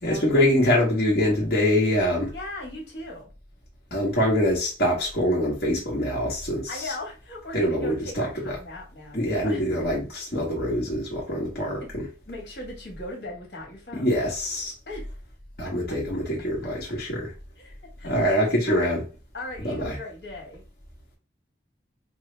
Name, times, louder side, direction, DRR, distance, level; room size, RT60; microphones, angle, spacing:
voice 1, 0.0-2.3 3.9-6.8 7.5-8.6 9.1-12.1 13.9-14.7 15.6-17.3 18.0-19.0 19.6-20.0, equal, 55° left, 1.3 m, -24 dB
voice 2, 2.3-3.3 6.7-9.6 11.8-11.9 12.3-14.1 14.9-15.1 15.6-15.9 17.6-18.1 18.7-18.9 19.3-20.6, left 1 dB, 75° left, 1.6 m, -38 dB
5.2 x 2.0 x 3.3 m
head